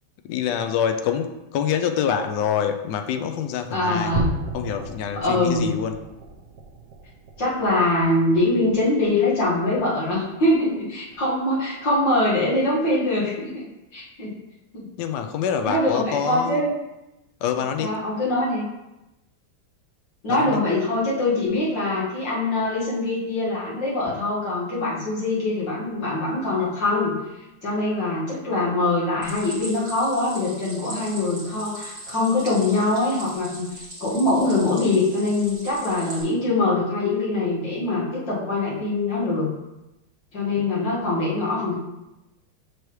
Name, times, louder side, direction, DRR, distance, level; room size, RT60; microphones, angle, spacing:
voice 1, 0.3-4.1 4.5-6.0 15.0-16.6 17.4-18.0 20.3-20.6 40.6-40.7, left 8 dB, 80° left, 7 dB, 0.9 m, -26 dB
voice 2, 3.7-4.3 5.2-5.7 7.4-14.3 14.7-14.9 15.6-16.7 17.8-18.6 20.2-27.2 27.6-39.5 40.3-41.7, left 2 dB, 60° left, -7 dB, 2.3 m, -23 dB
sound 1, 4.1-10.7 11.1-11.4 11.8-11.9 12.5-12.6, right 4 dB, 70° right, 1.3 m, -36 dB
Stream, 29.2-36.2, right 1 dB, 30° right, 1.8 m, -40 dB
6.7 x 4.7 x 3.1 m, 0.96 s
omnidirectional pair, 2.3 m